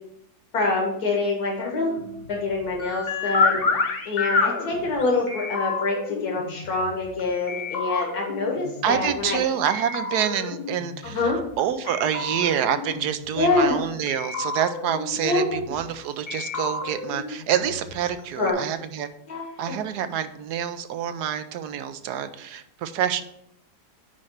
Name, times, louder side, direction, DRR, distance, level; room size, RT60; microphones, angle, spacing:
voice 1, 0.5-3.6 4.1-9.4 11.0-11.4 13.4-13.8 15.2-15.6 18.4-18.6 19.3-19.8, left 3 dB, 65° left, 0 dB, 2.1 m, -25 dB
sound 1, 1.6-7.2 7.5-9.3 9.7-11.6 11.9-13.8 14.1-15.9 16.3-18.2 18.5-18.6, left 4 dB, 40° left, 1.0 m, -30 dB
voice 2, 8.8-11.3 11.6-19.1 19.6-23.2, right 9 dB, 75° right, 11 dB, 1.2 m, -27 dB
9.6 x 3.3 x 6.3 m, 0.76 s
omnidirectional pair, 1.8 m